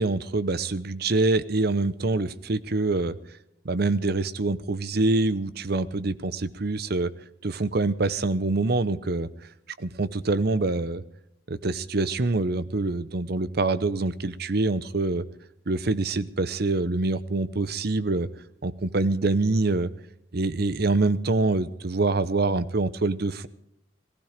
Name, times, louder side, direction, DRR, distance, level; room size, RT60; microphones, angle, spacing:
voice 1, 0.0-3.2 3.6-7.1 7.4-9.3 9.8-11.0 11.5-15.2 15.7-18.3 18.6-19.9 20.3-23.5, right 3 dB, 55° right, 15 dB, 0.8 m, -25 dB
17.5 x 15.5 x 5.1 m, 0.79 s
head